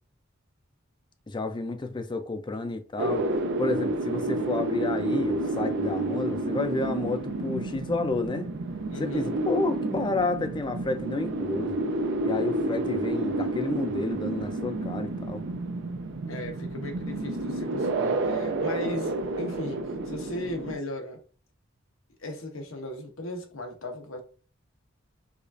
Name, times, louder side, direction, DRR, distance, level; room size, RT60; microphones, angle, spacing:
voice 1, 1.3-3.3 3.6-8.5 9.0-11.8 12.2-15.4, left 3 dB, 25° left, 0.4 m, -30 dB
sound 1, 3.0-20.8, right 2 dB, 60° right, 0.5 m, -30 dB
voice 2, 8.9-9.3 16.3-21.2 22.2-24.2, left 1 dB, 85° left, 1.0 m, -37 dB
4.9 x 2.4 x 2.5 m
head